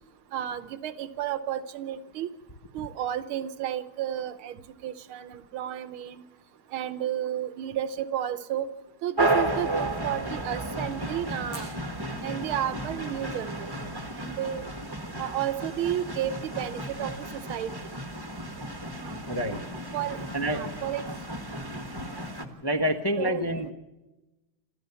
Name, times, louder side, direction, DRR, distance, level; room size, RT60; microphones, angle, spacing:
voice 1, 0.3-2.3 2.7-6.2 6.7-8.7 9.0-11.7 12.2-13.9 14.1-14.7 15.2-17.7 19.0-19.2 19.9-21.0 21.6-21.7 23.2-23.4, right 11 dB, 80° right, 13 dB, 1.7 m, -32 dB
sound 1, 9.2-22.5, right 1 dB, 15° right, 1.3 m, -33 dB
Fire, 11.4-20.6, left 1 dB, 80° left, 8.4 m, -56 dB
voice 2, 19.3-19.6 20.3-20.6 22.6-23.7, equal, 20° left, 5 dB, 0.6 m, -27 dB
28.0 x 13.5 x 6.9 m, 1.0 s
omnidirectional pair, 2.3 m